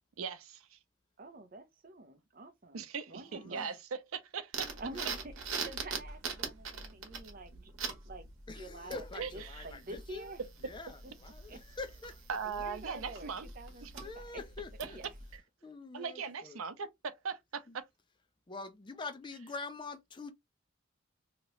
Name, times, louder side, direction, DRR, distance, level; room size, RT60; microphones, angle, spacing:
voice 1, 0.2-0.8 2.7-4.7 9.2-9.7 12.3-13.5 13.8-13.9 14.8-14.9 15.3-15.4 15.9-17.8, right 6 dB, 90° right, 0.6 m, -39 dB
voice 2, 1.2-3.7 4.8-5.3 5.6-7.7 8.0-8.3 8.6-9.0 9.3-10.4 11.5-11.6 12.4-14.4 14.9-15.0, right 2 dB, 45° right, 0.6 m, -48 dB
voice 3, 3.3-3.8 4.9-5.2 8.5-10.3 10.6-12.3 14.0-15.0 15.6-16.6 17.7-17.8 18.5-20.3, left 3 dB, 20° left, 0.4 m, -45 dB
sound 1, 4.5-15.3, right 5 dB, 70° right, 1.0 m, -43 dB
2.9 x 2.8 x 3.0 m
head